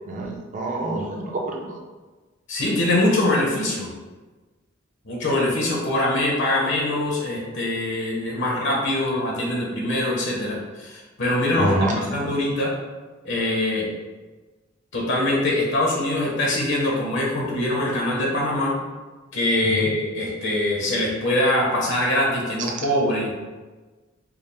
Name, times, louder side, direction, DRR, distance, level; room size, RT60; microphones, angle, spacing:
voice 1, 0.1-1.8 11.6-12.0 19.6-19.9, right 2 dB, 40° right, 0 dB, 0.6 m, -26 dB
voice 2, 2.5-3.9 5.1-11.8 12.1-12.7 13.2-13.9 14.9-18.7 19.3-23.4, left 1 dB, 60° left, -3 dB, 0.8 m, -23 dB
4.6 x 2.0 x 3.3 m, 1.3 s
head